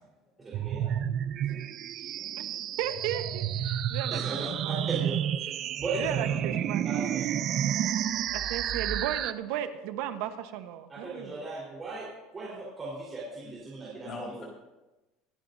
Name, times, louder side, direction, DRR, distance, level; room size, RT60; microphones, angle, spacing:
voice 1, 0.4-0.9 2.0-2.1 4.1-5.5 5.8-6.6 6.8-7.3 10.9-14.3, right 3 dB, 20° right, -6 dB, 4.1 m, -37 dB
sound 1, 0.5-9.3, right 10 dB, 45° right, 0.5 m, -30 dB
voice 2, 2.8-4.2 4.6-4.9 6.0-6.9 8.3-11.4, right 11 dB, 75° right, 8 dB, 1.1 m, -35 dB
voice 3, 7.6-8.3 13.4-13.5 14.0-14.4, left 3 dB, 40° left, -2 dB, 4.4 m, -43 dB
25.0 x 10.5 x 2.7 m, 1.0 s
cardioid pair, 135°, 0 cm